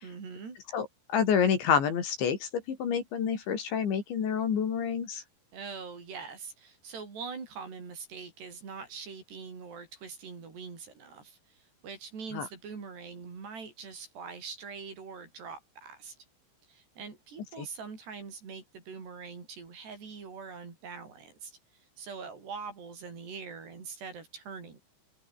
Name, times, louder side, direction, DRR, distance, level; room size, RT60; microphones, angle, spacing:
voice 1, 0.0-0.6 5.5-16.2 16.7-21.6 22.0-24.8, right 5 dB, 55° right, 7.7 m, -43 dB
voice 2, 0.7-5.2 12.3-12.5 17.6-17.7, left 7 dB, 65° left, 6.0 m, -28 dB
open air
omnidirectional pair, 5.7 m